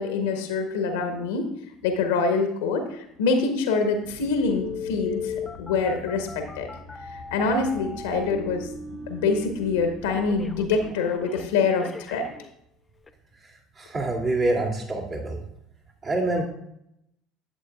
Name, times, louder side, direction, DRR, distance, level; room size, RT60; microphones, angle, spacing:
voice 1, 0.0-1.5 1.8-5.3 5.6-6.7 7.0-8.7 9.1-12.3, left 4 dB, 75° left, 5 dB, 1.2 m, -25 dB
sound 1, 4.0-10.9, left 1 dB, 75° right, 2.6 m, -45 dB
Telephone, 4.5-12.5 13.1-13.2, left 5 dB, 20° left, 0.7 m, -37 dB
voice 2, 13.8-15.4 16.0-16.4, right 2 dB, 40° right, -4 dB, 2.5 m, -26 dB
11.5 x 7.9 x 2.4 m, 0.77 s
hypercardioid pair, 65°, 0 cm